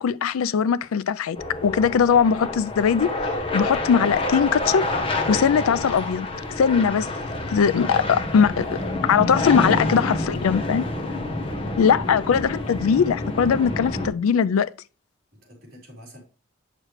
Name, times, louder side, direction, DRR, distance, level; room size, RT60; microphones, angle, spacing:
voice 1, 0.0-1.4 1.6-4.8 5.3-6.3 6.6-7.1 7.5-10.8 11.8-14.7, left 7 dB, 85° left, 0.4 m, -20 dB
sound 1, 1.3-14.1, left 2 dB, 25° left, 1.0 m, -28 dB
voice 2, 9.9-11.9 15.4-16.2, equal, 45° right, 3.5 m, -47 dB
7.5 x 6.5 x 3.1 m
head